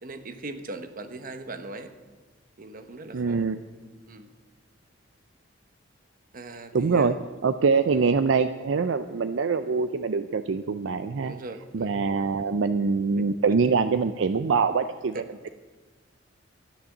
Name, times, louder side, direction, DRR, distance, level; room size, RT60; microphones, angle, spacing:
voice 1, 0.0-1.9 2.6-3.5 4.1-4.3 6.3-7.1 7.9-8.0 11.2-11.9 13.1-13.3 14.3-14.4 15.1-15.5, right 2 dB, 50° right, 9 dB, 1.1 m, -39 dB
voice 2, 3.1-3.6 6.7-7.1 7.4-11.3 11.7-15.2, right 5 dB, 75° right, 11 dB, 0.5 m, -24 dB
13.0 x 9.6 x 7.3 m, 1.3 s
head